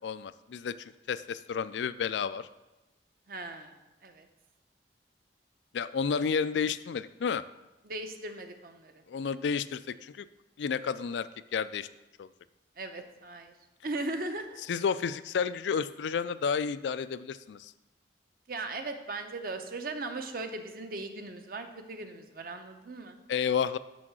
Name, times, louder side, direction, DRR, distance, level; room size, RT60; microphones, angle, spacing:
voice 1, 0.0-2.5 5.7-7.4 9.1-10.3 10.6-11.9 12.2-12.3 14.7-17.7 23.3-23.8, left 6 dB, 80° left, 14 dB, 0.4 m, -31 dB
voice 2, 3.3-4.3 7.8-9.0 12.8-13.5 13.8-14.6 18.5-23.2, right 2 dB, 55° right, 7 dB, 0.8 m, -38 dB
6.4 x 6.2 x 6.1 m, 1.1 s
head